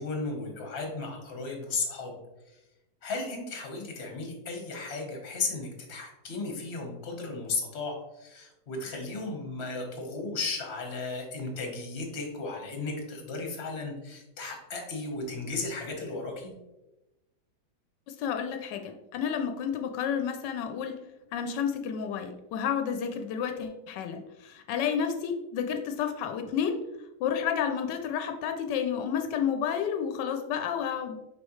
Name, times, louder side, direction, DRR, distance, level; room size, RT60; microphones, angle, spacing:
voice 1, 0.0-2.2 2.5-2.6 3.0-16.5, left 3 dB, 40° left, 2 dB, 1.4 m, -35 dB
voice 2, 18.1-21.0 21.3-26.8 27.2-31.2, left 7 dB, 90° left, 6 dB, 1.2 m, -31 dB
6.2 x 4.9 x 3.1 m, 0.98 s
omnidirectional pair, 1.8 m